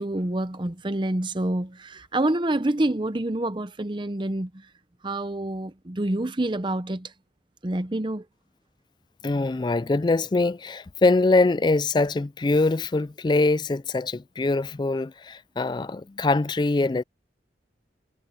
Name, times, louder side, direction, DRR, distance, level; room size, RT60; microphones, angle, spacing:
voice 1, 0.0-4.7 5.0-7.1 7.6-8.2, right 1 dB, 25° right, 0.7 m, -27 dB
voice 2, 9.2-17.0, left 3 dB, 25° left, 0.3 m, -23 dB
head